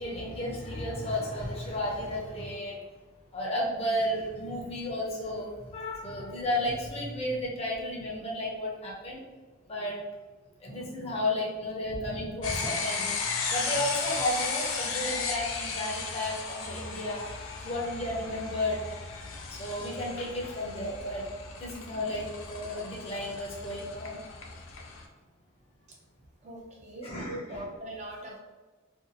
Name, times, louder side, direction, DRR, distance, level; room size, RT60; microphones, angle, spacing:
voice 1, 0.0-2.8 3.3-9.2 9.7-10.0 10.6-13.1 13.5-17.2 17.6-18.8 19.1-21.2 21.6-24.2 27.0-27.6, left 1 dB, 30° left, -4 dB, 0.6 m, -33 dB
sound 1, 12.4-25.0, left 5 dB, 90° left, 0.4 m, -35 dB
voice 2, 26.4-28.4, right 1 dB, 35° right, -2 dB, 0.4 m, -41 dB
2.6 x 2.4 x 2.6 m, 1.3 s
head